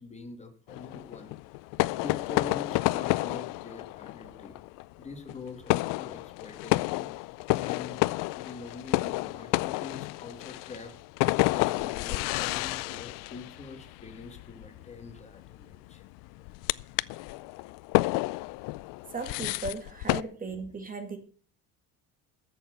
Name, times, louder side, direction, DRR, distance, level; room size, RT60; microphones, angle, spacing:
voice 1, 0.0-1.3 1.8-4.6 5.0-7.1 7.6-8.0 8.3-10.9 11.4-16.0, left 4 dB, 20° left, 6 dB, 2.3 m, -44 dB
sound 1, 0.7-20.2, left 22 dB, 85° left, 0.5 m, -30 dB
voice 2, 19.1-21.2, right 3 dB, 25° right, 8 dB, 1.9 m, -37 dB
13.5 x 6.9 x 7.7 m, 0.44 s
cardioid pair, 125°, 32 cm